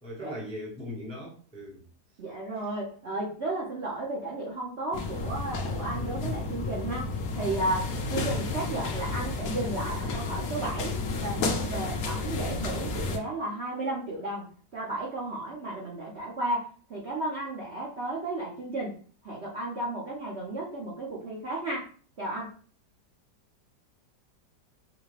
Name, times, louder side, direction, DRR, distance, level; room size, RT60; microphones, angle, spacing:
voice 1, 0.0-1.8, equal, 5° left, -3 dB, 0.7 m, -39 dB
voice 2, 2.2-19.0 19.2-21.9 22.2-22.5, right 2 dB, 50° right, -5 dB, 0.8 m, -34 dB
sound 1, 4.9-13.2, left 3 dB, 65° left, 1.0 m, -32 dB
4.8 x 2.2 x 3.2 m, 0.42 s
omnidirectional pair, 2.0 m